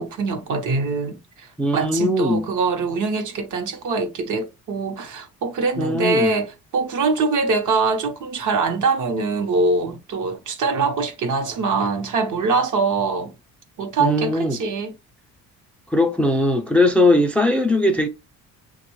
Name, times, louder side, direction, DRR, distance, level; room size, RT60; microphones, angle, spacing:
voice 1, 0.0-13.3 13.8-14.9, right 4 dB, 60° right, 0.9 m, -23 dB
voice 2, 1.6-2.4 5.8-6.3 14.0-14.6 15.9-18.1, left 1 dB, 5° left, 0.4 m, -19 dB
6.1 x 2.4 x 3.0 m
cardioid pair, 130°, 35 cm